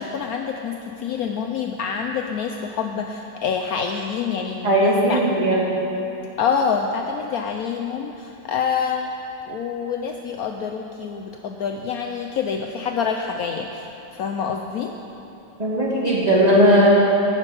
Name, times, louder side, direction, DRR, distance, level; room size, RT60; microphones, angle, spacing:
voice 1, 0.0-5.2 6.4-9.1 9.5-13.9 14.1-14.9, left 6 dB, 70° left, 3 dB, 1.0 m, -26 dB
voice 2, 4.6-5.6 15.6-16.9, right 1 dB, 20° right, -7 dB, 2.5 m, -17 dB
17.5 x 6.7 x 5.3 m, 2.9 s
omnidirectional pair, 1.8 m